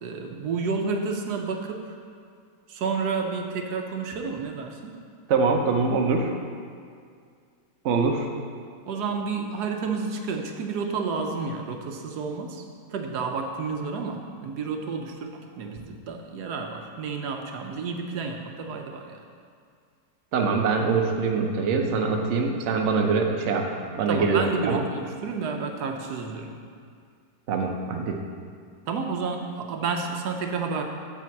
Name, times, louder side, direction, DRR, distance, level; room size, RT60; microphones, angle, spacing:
voice 1, 0.0-2.0 2.7-4.9 8.9-12.6 12.9-19.2 24.1-26.6 28.9-30.8, right 4 dB, 75° right, 4 dB, 1.2 m, -30 dB
voice 2, 5.3-6.3 7.8-8.3 20.3-24.8 27.5-28.2, right 4 dB, 55° right, 2 dB, 0.9 m, -24 dB
7.5 x 4.3 x 7.0 m, 2.2 s
omnidirectional pair, 1.8 m